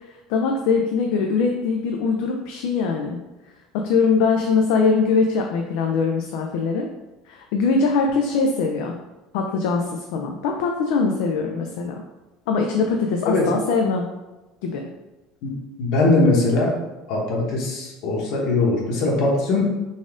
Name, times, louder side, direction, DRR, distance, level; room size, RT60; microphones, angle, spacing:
voice 1, 0.1-3.2 3.7-6.9 7.3-9.0 9.3-12.0 12.5-14.1 14.6-14.8, left 4 dB, 75° left, 2 dB, 0.4 m, -22 dB
voice 2, 15.8-16.7 17.1-19.6, left 2 dB, 60° left, -2 dB, 1.1 m, -20 dB
4.1 x 2.5 x 3.6 m, 1.1 s
cardioid pair, 155°, 0 cm